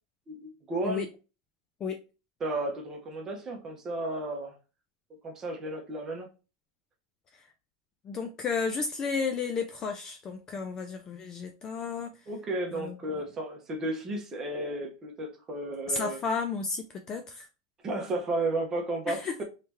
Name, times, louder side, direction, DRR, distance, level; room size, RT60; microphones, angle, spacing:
voice 1, 0.3-1.0 2.4-4.5 5.2-6.3 12.3-16.2 17.8-19.4, right 2 dB, 15° right, 0.9 m, -33 dB
voice 2, 8.0-12.2 12.7-13.0 15.9-17.5 19.1-19.4, left 5 dB, 20° left, 0.3 m, -32 dB
3.2 x 2.8 x 3.5 m
supercardioid pair, 165°, 3 cm